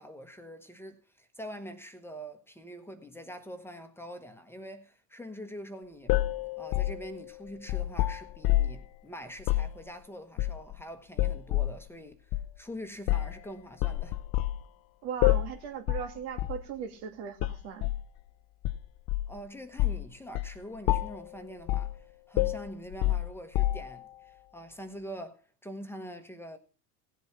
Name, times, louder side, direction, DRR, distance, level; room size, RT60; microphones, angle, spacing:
voice 1, 0.0-6.2 6.6-14.2 19.3-26.6, equal, 5° left, 1.1 m, -44 dB
sound 1, 6.1-8.9 9.4-9.7 10.4-10.8 11.2-11.8 12.3-12.5 13.1-13.4 13.8-14.6 15.2-15.6 15.9-16.1 16.4-16.6 17.4-18.0 18.6-19.4 19.8-20.1 20.4-20.6 20.9-21.3 21.7-22.0 22.4-24.0, left 15 dB, 55° left, 0.7 m, -28 dB
voice 2, 15.0-17.9, right 8 dB, 80° right, 2.5 m, -38 dB
16.5 x 7.9 x 5.8 m
cardioid pair, 130°, 43 cm